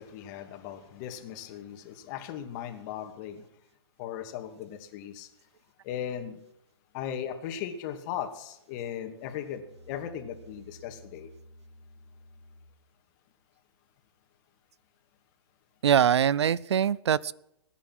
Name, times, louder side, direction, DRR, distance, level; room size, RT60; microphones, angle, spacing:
voice 1, 0.0-3.4 4.0-5.3 5.8-6.4 6.9-9.6 9.9-11.3, left 9 dB, 40° left, 6 dB, 2.5 m, -37 dB
Musical instrument, 9.4-12.9, equal, 20° right, 5.8 m, -53 dB
voice 2, 15.8-17.3, right 8 dB, 75° right, 23 dB, 0.6 m, -23 dB
20.0 x 10.0 x 6.1 m, 0.79 s
hypercardioid pair, 130°, 14 cm